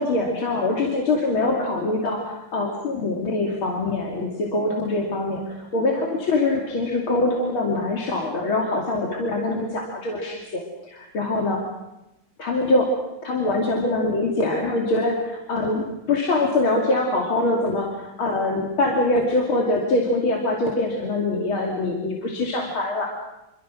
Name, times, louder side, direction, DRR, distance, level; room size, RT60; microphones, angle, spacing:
voice 1, 0.0-11.7 12.4-12.9 13.2-23.1, left 2 dB, 75° left, 0 dB, 3.4 m, -24 dB
27.0 x 24.0 x 6.2 m, 0.95 s
omnidirectional pair, 2.3 m